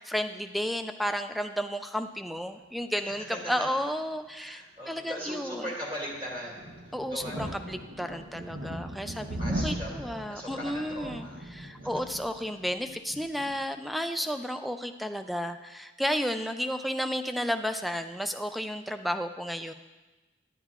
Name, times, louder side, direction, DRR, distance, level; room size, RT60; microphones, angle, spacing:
voice 1, 0.0-5.7 6.9-11.3 11.6-19.7, equal, ahead, 8 dB, 0.3 m, -32 dB
voice 2, 3.0-3.7 4.3-7.6 8.1-8.7 9.4-11.4 14.2-14.3, equal, 30° right, -3 dB, 2.5 m, -40 dB
sound 1, 6.1-13.6, right 1 dB, 90° right, 0.9 m, -38 dB
10.5 x 9.1 x 2.4 m, 1.1 s
head